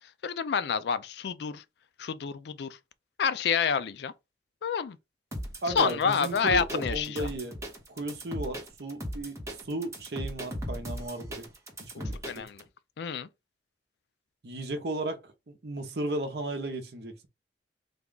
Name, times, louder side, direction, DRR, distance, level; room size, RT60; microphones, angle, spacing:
voice 1, 0.2-1.6 2.0-2.8 3.2-4.1 4.6-5.0 5.7-7.3 12.3-12.6 13.0-13.3, left 6 dB, 65° left, 0.3 m, -28 dB
sound 1, 5.3-12.6, equal, 15° right, 1.0 m, -37 dB
voice 2, 5.6-7.6 7.9-11.4 12.0-12.5 14.4-17.3, right 2 dB, 60° right, 0.7 m, -35 dB
3.5 x 2.3 x 3.7 m
head